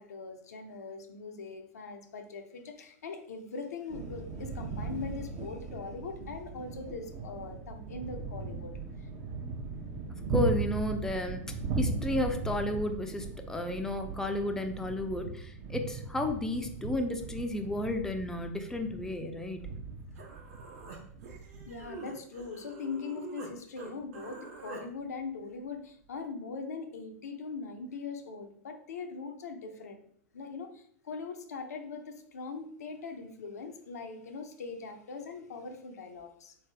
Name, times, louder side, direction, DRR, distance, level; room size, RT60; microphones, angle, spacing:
voice 1, 0.0-8.7 9.0-9.1 21.7-30.1 30.3-36.6, left 4 dB, 75° left, 5 dB, 0.7 m, -41 dB
sound 1, 3.9-21.9, right 3 dB, 45° right, 0.8 m, -38 dB
voice 2, 10.3-11.4 11.8-19.6, left 1 dB, 5° left, 5 dB, 0.5 m, -32 dB
Human voice, 19.8-19.9 20.2-23.5 23.8-24.8, right 4 dB, 65° right, 1.1 m, -46 dB
3.8 x 3.4 x 3.3 m, 0.62 s
hypercardioid pair, 100°, 9 cm